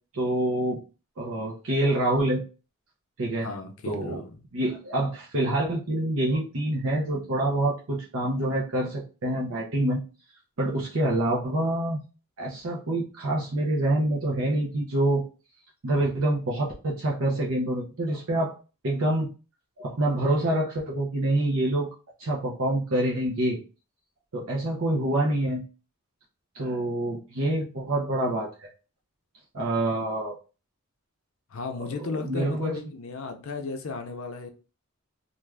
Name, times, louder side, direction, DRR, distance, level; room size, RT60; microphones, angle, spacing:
voice 1, 0.1-0.8 1.2-2.4 3.2-3.5 3.9-4.2 4.5-10.0 10.6-12.0 12.4-15.2 15.8-18.5 18.8-19.3 19.8-21.9 22.2-23.6 24.3-25.6 26.5-28.7 29.5-30.3 32.0-32.8, right 1 dB, 65° right, 0.7 m, -26 dB
voice 2, 3.4-4.4 31.5-34.5, left 3 dB, 65° left, 0.5 m, -35 dB
2.5 x 2.3 x 3.2 m
head